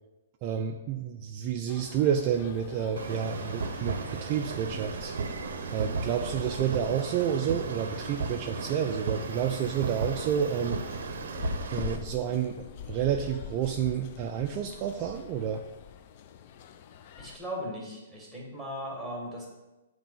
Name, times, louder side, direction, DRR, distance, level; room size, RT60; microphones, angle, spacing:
voice 1, 0.4-5.1 5.7-10.8 11.7-15.6, right 8 dB, 30° right, 4 dB, 0.3 m, -30 dB
Aula Vaga - Empty Class, 1.7-17.4, left 8 dB, 45° left, 0.3 m, -44 dB
sound 1, 3.0-12.0, right 5 dB, 75° right, 0.6 m, -35 dB
voice 2, 17.2-19.5, equal, ahead, -2 dB, 1.5 m, -37 dB
7.2 x 2.9 x 5.4 m, 1.1 s
hypercardioid pair, 150°, 0 cm